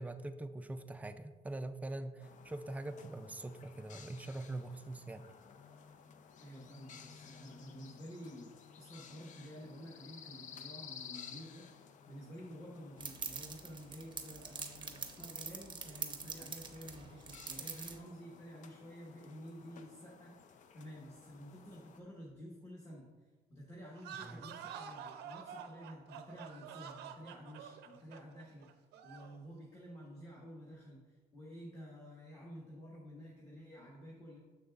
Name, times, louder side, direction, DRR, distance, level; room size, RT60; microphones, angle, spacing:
voice 1, 0.0-5.3 24.2-24.4, right 2 dB, 10° right, 9 dB, 0.3 m, -43 dB
sound 1, 2.2-22.0, left 7 dB, 50° left, 0.5 m, -56 dB
voice 2, 6.4-23.1 23.5-28.7 29.0-34.4, equal, 20° left, -5 dB, 1.3 m, -51 dB
sound 2, 13.0-18.0, right 5 dB, 30° right, 0.7 m, -44 dB
sound 3, 23.9-29.4, right 7 dB, 80° right, 0.5 m, -48 dB
7.1 x 6.3 x 2.4 m, 1.4 s
cardioid pair, 110°, 17 cm